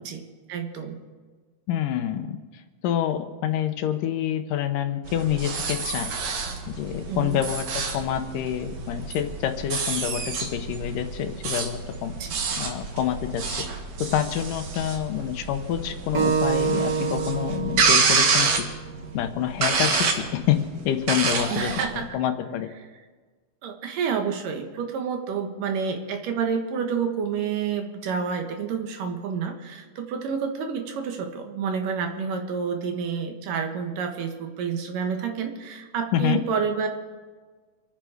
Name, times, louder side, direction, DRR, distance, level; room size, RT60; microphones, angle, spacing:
voice 1, 0.0-1.0 7.1-7.4 12.1-12.4 21.5-22.2 23.6-36.9, right 6 dB, 80° right, 4 dB, 3.1 m, -29 dB
voice 2, 1.7-6.1 6.7-12.1 12.6-13.6 14.0-18.7 19.1-22.7 36.1-36.4, left 10 dB, 80° left, 8 dB, 2.5 m, -27 dB
sound 1, 5.1-22.0, right 5 dB, 60° right, 2.6 m, -28 dB
Acoustic guitar, 16.1-19.4, right 6 dB, 35° right, 1.9 m, -27 dB
27.0 x 9.2 x 4.9 m, 1.4 s
omnidirectional pair, 3.8 m